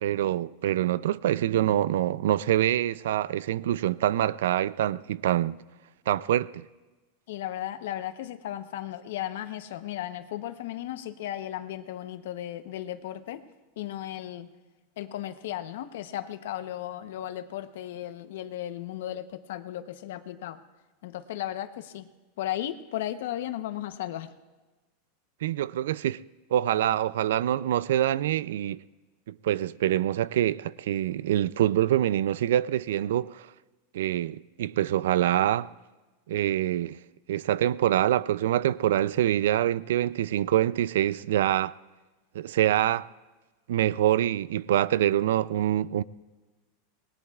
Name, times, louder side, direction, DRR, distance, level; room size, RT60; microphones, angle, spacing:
voice 1, 0.0-5.6 6.1-6.7 25.4-26.2 26.5-28.8 29.3-33.5 33.9-35.7 36.3-37.0 37.3-41.7 42.3-43.1 43.7-46.0, right 12 dB, 90° right, 0.4 m, -25 dB
voice 2, 7.3-13.4 13.8-14.5 15.0-20.6 21.0-22.1 22.4-24.3, left 12 dB, 70° left, 0.9 m, -35 dB
26.0 x 20.0 x 2.4 m
supercardioid pair, 170°, 0 cm